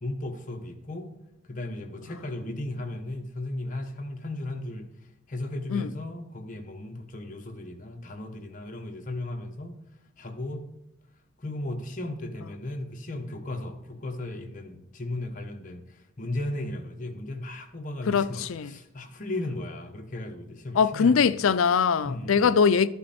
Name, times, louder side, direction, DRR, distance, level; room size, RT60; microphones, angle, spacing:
voice 1, 0.0-1.1 1.5-4.8 5.3-9.7 10.2-10.7 11.4-15.8 16.2-21.5 22.0-22.5, left 1 dB, 40° left, 1.1 m, -35 dB
voice 2, 18.1-18.7 20.7-22.9, left 6 dB, 80° left, 0.4 m, -22 dB
12.0 x 9.6 x 4.3 m
head